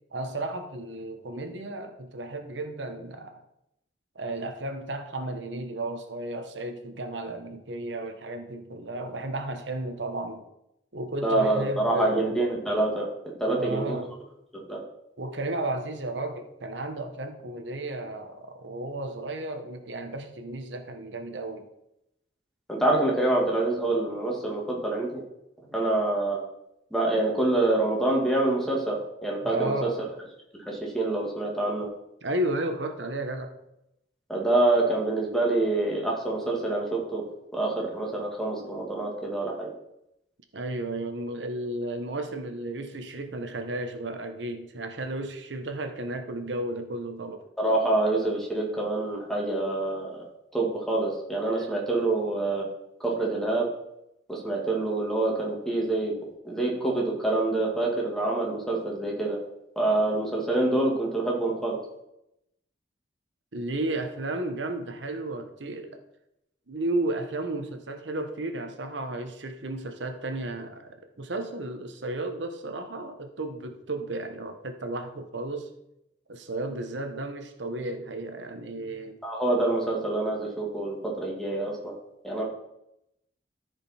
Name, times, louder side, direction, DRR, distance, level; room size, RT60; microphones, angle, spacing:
voice 1, 0.1-3.4 4.1-10.4 10.9-12.4 13.5-14.2 15.2-21.7 29.4-30.0 32.2-33.5 40.5-47.4 51.5-51.6 63.5-66.0 66.7-75.7 76.3-79.2, right 1 dB, 85° right, 6 dB, 1.1 m, -33 dB
voice 2, 11.2-13.1 13.4-14.0 14.5-14.8 22.7-25.2 25.7-26.4 26.9-29.9 30.6-31.9 34.3-37.2 37.5-39.7 47.6-50.2 50.5-52.7 53.0-53.7 54.3-56.1 56.4-59.4 59.8-61.8 79.2-82.0 82.2-82.4, right 2 dB, ahead, -2 dB, 2.1 m, -26 dB
14.0 x 5.1 x 4.3 m, 0.84 s
head